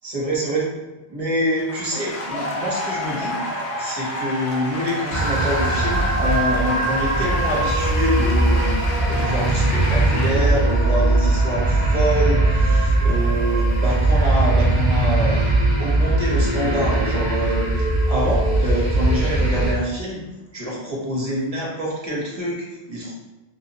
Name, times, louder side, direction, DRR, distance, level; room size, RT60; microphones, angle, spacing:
voice 1, 0.0-0.7 1.1-3.4 3.8-8.7 9.1-15.5 15.8-20.2 20.5-23.1, equal, 40° right, -4 dB, 0.8 m, -26 dB
sound 1, 1.4-10.3, left 1 dB, 85° left, 0.9 m, -30 dB
sound 2, 5.1-19.7, right 2 dB, 55° left, 1.5 m, -20 dB
3.2 x 2.0 x 2.7 m, 1.1 s
omnidirectional pair, 1.0 m